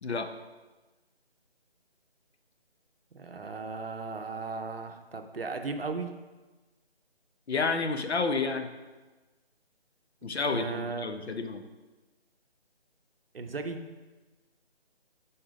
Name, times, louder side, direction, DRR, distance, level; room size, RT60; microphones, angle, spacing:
voice 1, 0.0-0.3 7.5-8.7 10.2-11.6, left 4 dB, 85° left, 7 dB, 0.8 m, -30 dB
voice 2, 3.1-6.1 10.2-11.1 13.3-13.8, right 4 dB, 60° right, 6 dB, 0.7 m, -36 dB
5.1 x 4.3 x 5.0 m, 1.2 s
figure-of-eight pair, 175°, 32 cm